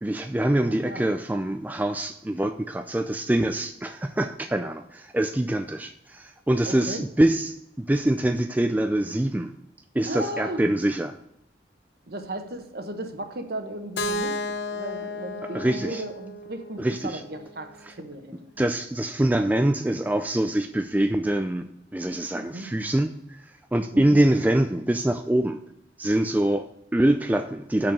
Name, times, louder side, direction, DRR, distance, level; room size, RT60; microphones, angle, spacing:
voice 1, 0.0-9.5 9.9-11.1 15.5-16.0 16.8-17.2 17.9-18.0 18.6-25.6 26.0-27.9, right 1 dB, 10° right, 7 dB, 0.3 m, -24 dB
voice 2, 0.6-1.0 6.6-7.0 10.0-10.6 12.1-14.3 14.7-18.4 22.3-22.7 23.9-24.2, right 1 dB, 55° right, 6 dB, 1.0 m, -35 dB
Keyboard (musical), 14.0-17.9, left 2 dB, 70° left, 0.7 m, -33 dB
6.6 x 6.1 x 6.7 m, 0.79 s
head